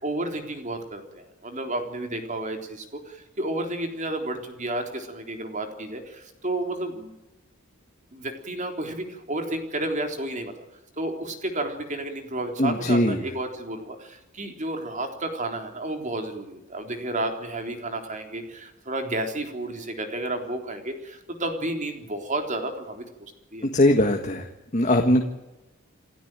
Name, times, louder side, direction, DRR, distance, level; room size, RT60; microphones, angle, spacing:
voice 1, 0.0-7.1 8.1-10.5 11.0-23.7, right 1 dB, 35° right, 5 dB, 3.7 m, -31 dB
voice 2, 12.6-13.2 23.6-24.5 24.7-25.2, left 1 dB, 35° left, 4 dB, 1.7 m, -20 dB
28.5 x 13.0 x 9.1 m, 1.0 s
head